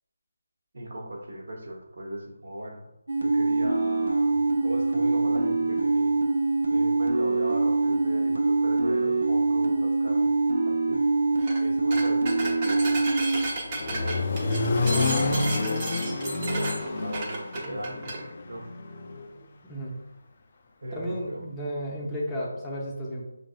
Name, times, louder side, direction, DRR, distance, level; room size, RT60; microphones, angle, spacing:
voice 1, 0.7-2.9 3.2-6.2 6.7-10.3 10.6-11.0 11.6-13.1 13.7-18.1 18.4-18.6 20.8-21.4, right 1 dB, 60° right, -1 dB, 1.2 m, -38 dB
sound 1, 3.1-13.4, right 3 dB, 80° right, 0.6 m, -24 dB
sound 2, 11.4-11.6 11.9-18.2, right 2 dB, 30° right, 1.0 m, -33 dB
Accelerating revving vroom, 13.2-19.2, left 3 dB, 45° left, 0.4 m, -28 dB
voice 2, 19.6-19.9 20.9-23.3, equal, 10° left, -6 dB, 0.8 m, -33 dB
5.9 x 2.6 x 2.4 m, 0.87 s
figure-of-eight pair, 155°, 0 cm